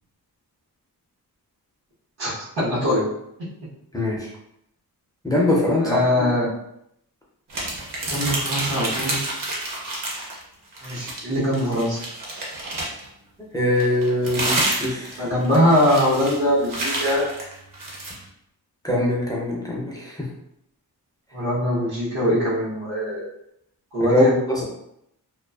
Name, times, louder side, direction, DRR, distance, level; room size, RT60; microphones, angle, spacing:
voice 1, 2.2-3.0 5.8-6.5 8.1-9.3 10.8-12.0 15.2-17.3 21.3-23.3 23.9-24.3, equal, 85° right, -11 dB, 1.0 m, -22 dB
voice 2, 3.9-4.3 5.2-6.3 13.5-15.2 18.8-20.3 24.0-24.6, left 1 dB, 10° left, -4 dB, 0.4 m, -22 dB
sound 1, 7.5-10.4 10.7-13.1 13.8-18.2, right 1 dB, 55° right, 0.7 m, -29 dB
2.4 x 2.3 x 2.3 m, 0.78 s
wide cardioid pair, 170°, 39 cm